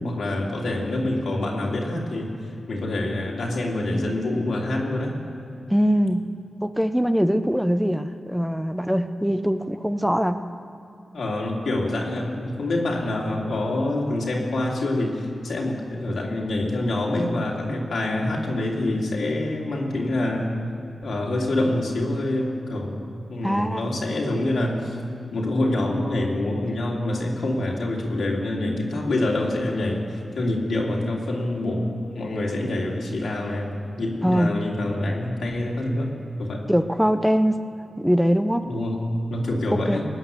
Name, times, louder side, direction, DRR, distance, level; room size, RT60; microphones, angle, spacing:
voice 1, 0.0-5.2 11.1-20.5 21.0-23.0 23.3-25.0 25.3-33.7 34.0-36.1 36.4-36.6 38.7-40.1, left 1 dB, 80° left, -1 dB, 2.7 m, -26 dB
voice 2, 5.7-6.3 6.6-10.4 23.4-23.8 34.2-34.5 36.7-37.6 38.0-38.7 39.9-40.0, equal, 5° right, 9 dB, 0.7 m, -22 dB
19.0 x 9.3 x 7.0 m, 2.6 s
cardioid pair, 55°, 0 cm